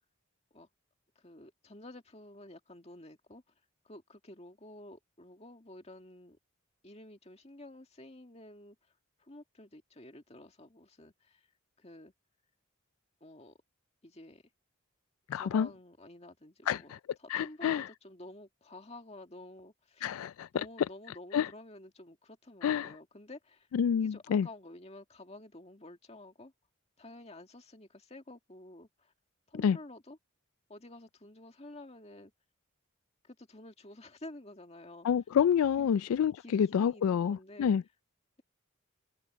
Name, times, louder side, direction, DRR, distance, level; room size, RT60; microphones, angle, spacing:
voice 1, 1.2-3.4 3.8-6.4 6.8-8.8 9.2-11.5 11.8-12.1 13.2-13.6 14.0-14.4 15.3-20.1 20.5-23.7 24.0-26.5 27.0-29.1 29.5-30.2 30.7-32.3 33.2-35.1 35.8-36.0 36.4-37.7, left 1 dB, 30° left, 2.2 m, -50 dB
voice 2, 15.3-15.7 16.7-17.0 17.3-17.9 20.0-20.6 21.3-21.5 22.6-22.9 23.7-24.5 29.6-29.8 35.0-37.8, left 8 dB, 80° left, 0.3 m, -28 dB
head